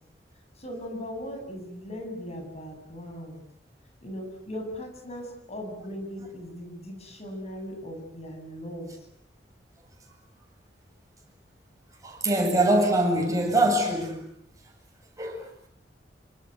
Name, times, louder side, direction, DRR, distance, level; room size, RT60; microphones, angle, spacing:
voice 1, 0.6-3.4 4.0-9.0, equal, 40° left, 7.9 m, -38 dB
voice 2, 12.0-14.2 15.2-15.4, right 1 dB, 20° right, 7.9 m, -23 dB
27.0 x 25.5 x 8.1 m
head